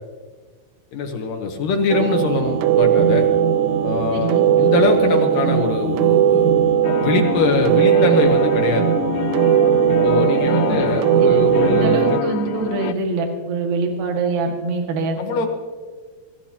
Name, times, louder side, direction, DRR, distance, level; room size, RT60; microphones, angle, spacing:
voice 1, 0.9-3.3 3.8-6.5 7.0-8.9 10.0-12.2 15.2-15.5, left 4 dB, 70° left, 3 dB, 2.1 m, -22 dB
sound 1, 1.9-12.2, right 9 dB, 80° right, 3.0 m, -18 dB
voice 2, 4.1-4.4 10.5-10.8 11.1-15.2, right 3 dB, 60° right, 2 dB, 3.4 m, -24 dB
sound 2, 6.8-12.9, left 13 dB, 90° left, 2.3 m, -28 dB
25.5 x 15.0 x 2.9 m, 1.5 s
omnidirectional pair, 5.3 m